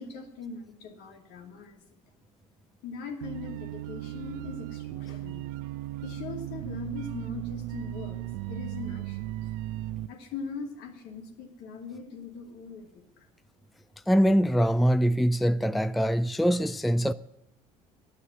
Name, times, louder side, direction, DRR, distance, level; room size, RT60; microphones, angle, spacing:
voice 1, 0.0-2.0 2.8-5.5 6.0-9.5 10.1-13.3, left 4 dB, 70° left, 2.3 m, -41 dB
Paterne Austère, 3.2-10.1, right 15 dB, 75° right, 0.5 m, -36 dB
voice 2, 14.1-17.1, equal, ahead, 0.4 m, -23 dB
11.0 x 9.6 x 9.7 m
hypercardioid pair, 65°, 18 cm